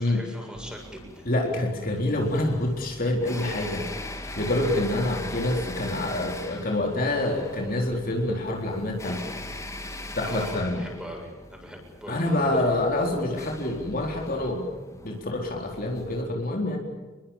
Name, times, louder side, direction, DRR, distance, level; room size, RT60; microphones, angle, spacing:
voice 1, 0.0-1.3 3.3-3.5 10.2-12.2 12.5-12.6, right 1 dB, 5° right, 1 dB, 7.7 m, -41 dB
sound 1, 0.5-16.2, left 1 dB, 15° left, 2.9 m, -40 dB
voice 2, 1.3-9.2 10.2-10.8 12.1-14.7 15.0-16.8, left 1 dB, 45° left, 1 dB, 4.2 m, -27 dB
30.0 x 22.0 x 7.4 m, 1.3 s
head